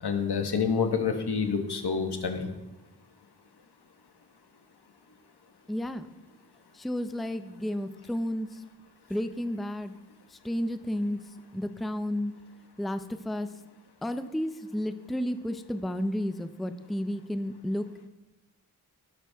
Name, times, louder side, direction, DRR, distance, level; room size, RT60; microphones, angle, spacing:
voice 1, 0.0-2.5, left 5 dB, 75° left, 5 dB, 1.2 m, -28 dB
voice 2, 5.7-6.1 6.7-8.5 9.1-9.9 10.4-11.2 11.5-12.3 12.8-13.5 14.0-17.8, left 1 dB, ahead, 10 dB, 0.5 m, -32 dB
17.0 x 6.1 x 3.5 m, 0.99 s
cardioid pair, 50°, 40 cm